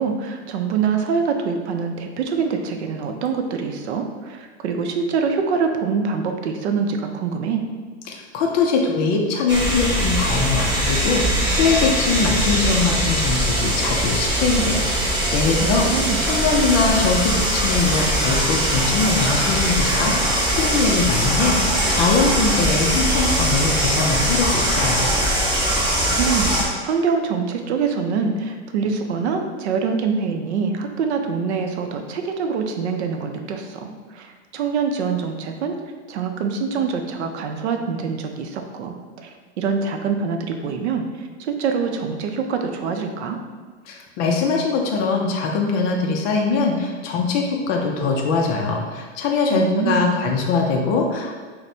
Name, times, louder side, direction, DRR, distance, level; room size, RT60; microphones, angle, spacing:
voice 1, 0.0-7.6 15.6-16.2 25.9-35.8 36.1-43.4 49.5-50.2, right 5 dB, 70° right, 5 dB, 0.6 m, -25 dB
voice 2, 8.1-25.1 43.9-51.4, left 4 dB, 30° left, 1 dB, 0.4 m, -22 dB
sound 1, 9.5-26.6, right 1 dB, 10° right, 0.8 m, -21 dB
5.8 x 2.1 x 2.6 m, 1.4 s
hypercardioid pair, 120°, 35 cm